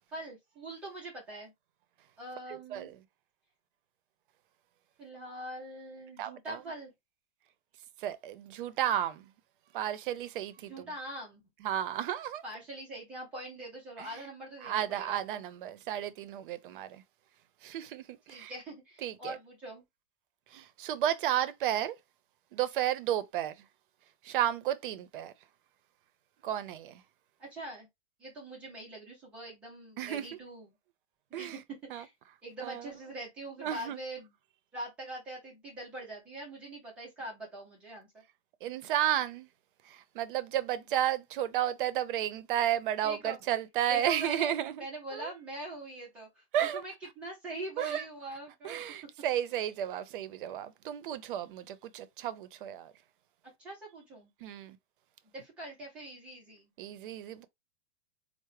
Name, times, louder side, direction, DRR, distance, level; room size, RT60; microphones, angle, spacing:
voice 1, 0.1-1.5 2.2-3.0 5.0-6.9 10.7-11.4 12.4-15.4 18.3-19.8 27.4-27.9 28.2-30.7 31.3-32.1 32.4-34.3 34.7-38.2 43.0-43.4 43.9-48.8 53.6-54.3 55.3-56.7, right 1 dB, 5° right, 0.3 m, -43 dB
voice 2, 2.5-2.9 6.2-6.6 8.0-9.3 9.7-10.9 11.6-12.4 14.0-14.2 14.6-17.0 17.6-18.5 19.0-19.3 20.5-21.9 22.5-23.6 24.2-25.3 26.4-27.0 30.0-30.3 31.3-31.6 31.9-32.0 32.6-32.9 33.6-34.0 38.6-39.5 39.8-44.8 45.1-45.3 46.5-46.8 47.8-48.0 48.6-52.9 54.4-54.8 56.8-57.5, right 11 dB, 50° right, 0.6 m, -33 dB
4.6 x 2.0 x 3.1 m
supercardioid pair, 160°, 35 cm